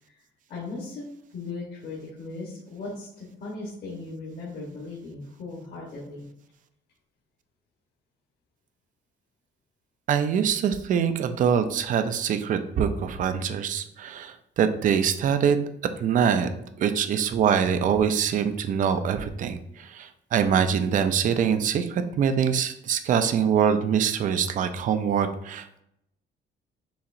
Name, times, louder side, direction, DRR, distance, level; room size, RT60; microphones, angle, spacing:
voice 1, 0.5-6.2, left 3 dB, 50° left, -5 dB, 1.1 m, -38 dB
voice 2, 10.1-15.7 16.0-16.5 16.8-25.8, right 7 dB, 40° right, 9 dB, 0.4 m, -24 dB
6.9 x 2.9 x 2.5 m, 0.78 s
cardioid pair, 165°, 20 cm